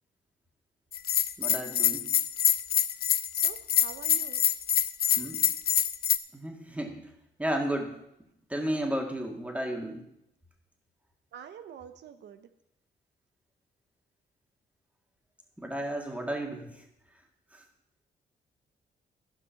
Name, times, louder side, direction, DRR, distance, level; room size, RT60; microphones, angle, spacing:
Bell, 0.9-6.2, left 10 dB, 60° left, 0.5 m, -25 dB
voice 1, 1.4-2.1 5.2-5.4 6.3-7.1 7.4-8.0 8.5-10.0 15.6-16.8 17.5-17.6, right 1 dB, 10° right, 2 dB, 2.0 m, -33 dB
voice 2, 3.3-4.4 11.3-12.5, right 9 dB, 75° right, 10 dB, 0.6 m, -46 dB
13.0 x 5.6 x 5.8 m, 0.82 s
cardioid pair, 80°, 18 cm